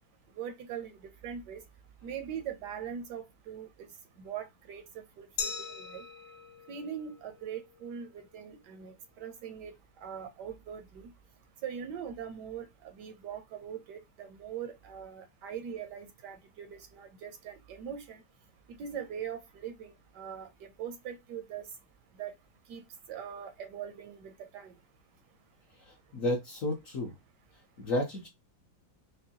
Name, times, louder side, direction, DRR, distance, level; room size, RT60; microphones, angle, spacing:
voice 1, 0.4-1.6 2.0-3.9 4.2-4.8 5.2-6.0 6.7-9.7 10.0-11.1 11.6-12.7 12.9-18.2 18.7-20.5 20.8-21.6 22.2-22.3 22.7-22.8 23.1-24.7, right 8 dB, 70° right, 1.1 m, -41 dB
Glass, 5.4-8.1, left 6 dB, 75° left, 1.5 m, -41 dB
voice 2, 25.8-27.1 27.8-28.3, left 1 dB, 60° left, 0.9 m, -32 dB
5.3 x 2.2 x 2.7 m
omnidirectional pair, 2.1 m